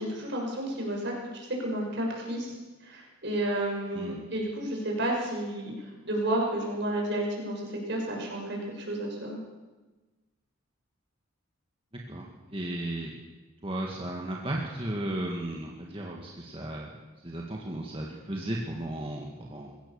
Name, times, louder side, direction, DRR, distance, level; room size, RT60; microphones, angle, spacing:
voice 1, 0.0-2.5 2.8-5.7 6.0-9.4, right 1 dB, 50° right, 0 dB, 6.3 m, -31 dB
voice 2, 12.1-13.1 13.6-16.9 17.2-19.7, right 1 dB, 25° right, -2 dB, 1.9 m, -35 dB
22.5 x 17.0 x 7.1 m, 1.2 s
head